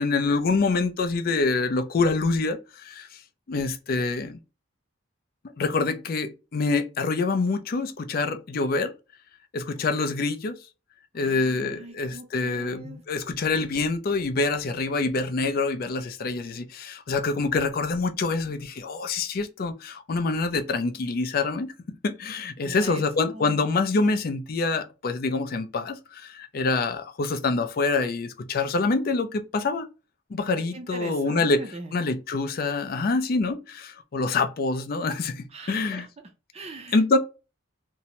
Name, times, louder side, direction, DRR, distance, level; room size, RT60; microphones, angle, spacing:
voice 1, 0.0-3.2 3.5-4.4 5.6-8.9 9.5-10.6 11.1-29.9 30.3-31.7 31.9-36.1 36.9-37.2, left 3 dB, 50° left, 0.4 m, -26 dB
voice 2, 11.1-13.0 22.6-23.7 30.5-31.9 35.5-36.1 36.5-37.2, right 2 dB, 30° right, 0.4 m, -41 dB
2.6 x 2.1 x 2.8 m
head